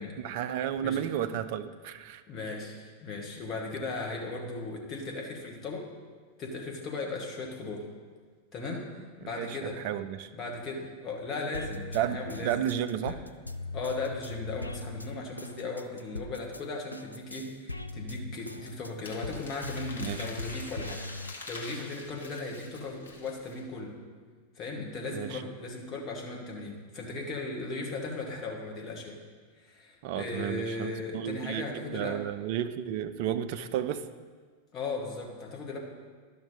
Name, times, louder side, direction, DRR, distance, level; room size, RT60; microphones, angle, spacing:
voice 1, 0.2-2.2 9.2-10.3 11.9-13.2 20.0-20.3 25.1-25.4 30.0-34.0, right 10 dB, 50° right, 10 dB, 0.4 m, -32 dB
voice 2, 0.8-1.1 2.3-5.9 6.4-7.8 8.5-9.8 10.3-12.6 13.1-13.2 13.7-21.0 21.5-24.0 24.5-29.2 29.6-32.2 34.7-35.8, left 3 dB, 30° left, 0 dB, 1.6 m, -37 dB
sound 1, 11.5-16.6 16.9-22.1 22.6-23.5, left 2 dB, 90° left, 0.3 m, -40 dB
Crumpling crinkling, 19.0-23.6, left 3 dB, 70° left, 1.4 m, -45 dB
12.0 x 5.8 x 3.9 m, 1.5 s
figure-of-eight pair, 90°, 0 cm